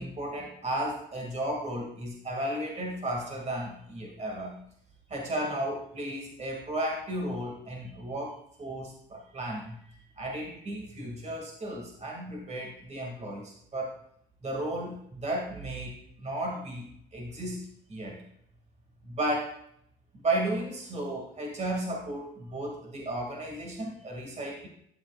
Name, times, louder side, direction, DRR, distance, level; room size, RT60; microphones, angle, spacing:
voice 1, 0.0-4.6 5.1-13.9 14.4-17.6 17.9-18.2 19.0-19.5 20.1-24.7, right 1 dB, 35° right, 0 dB, 2.3 m, -34 dB
12.5 x 7.7 x 2.5 m, 0.70 s
cardioid pair, 90°, 20 cm